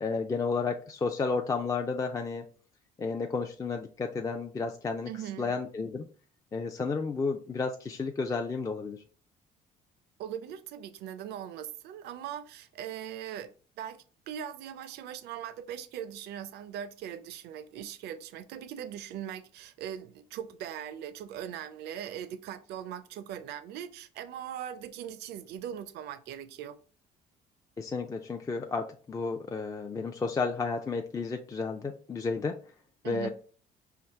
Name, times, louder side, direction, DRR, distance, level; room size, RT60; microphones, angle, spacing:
voice 1, 0.0-2.4 3.0-5.1 5.4-6.1 6.5-9.0 27.8-32.5 33.0-33.3, left 4 dB, 20° left, 0.4 m, -32 dB
voice 2, 5.1-5.6 10.2-26.8 33.0-33.3, right 10 dB, 75° right, 0.5 m, -40 dB
4.6 x 2.6 x 3.5 m
cardioid pair, 110°, 17 cm